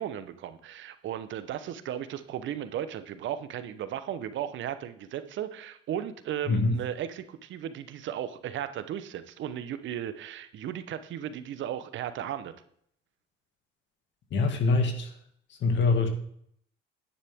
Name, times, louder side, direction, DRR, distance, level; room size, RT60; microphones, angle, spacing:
voice 1, 0.0-12.5, right 10 dB, 65° right, 12 dB, 0.9 m, -35 dB
voice 2, 14.3-15.1 15.6-16.1, left 3 dB, 60° left, 5 dB, 2.1 m, -24 dB
10.0 x 9.8 x 3.6 m, 0.66 s
cardioid pair, 90°, 21 cm